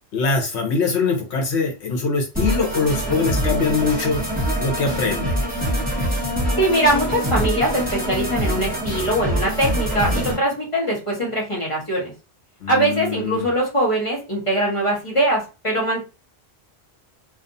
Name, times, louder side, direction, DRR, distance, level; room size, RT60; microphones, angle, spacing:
voice 1, 0.1-4.2 4.6-5.4 12.6-13.5, left 4 dB, 75° left, 2 dB, 1.1 m, -22 dB
sound 1, 2.3-10.4, equal, 10° right, 1.1 m, -24 dB
voice 2, 6.6-12.1 12.7-16.0, right 1 dB, 30° left, -5 dB, 1.0 m, -22 dB
2.5 x 2.4 x 2.6 m, 0.31 s
omnidirectional pair, 1.1 m